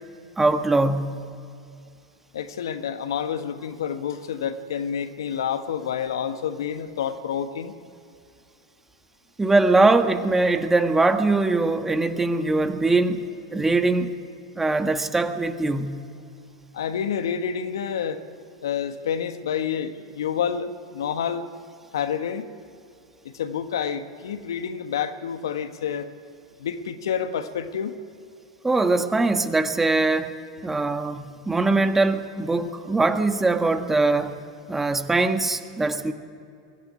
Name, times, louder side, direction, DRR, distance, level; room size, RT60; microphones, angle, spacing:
voice 1, 0.4-1.3 9.4-14.1 14.5-16.1 28.6-30.3 30.6-34.4 34.7-36.1, right 3 dB, 10° right, 8 dB, 1.7 m, -22 dB
voice 2, 2.3-7.7 16.7-18.2 18.6-21.5 21.9-22.5 23.2-26.1 26.6-28.0, left 8 dB, 75° left, 10 dB, 1.4 m, -28 dB
23.0 x 16.0 x 9.7 m, 2.5 s
hypercardioid pair, 90°, 2 cm